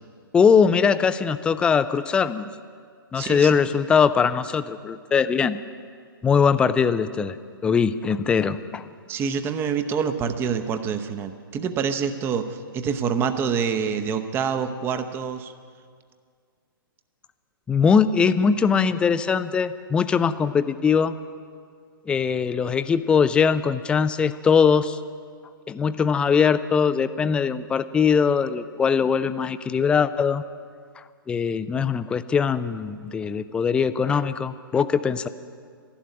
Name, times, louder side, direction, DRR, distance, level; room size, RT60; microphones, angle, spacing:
voice 1, 0.3-2.5 3.1-5.6 6.2-7.4 7.6-8.8 17.7-21.1 22.1-25.0 25.7-30.4 31.3-35.3, left 6 dB, 10° left, 13 dB, 0.4 m, -21 dB
voice 2, 3.1-3.6 9.1-15.5, right 6 dB, 20° right, 9 dB, 0.8 m, -26 dB
13.0 x 11.5 x 9.3 m, 2.1 s
figure-of-eight pair, 120°, 12 cm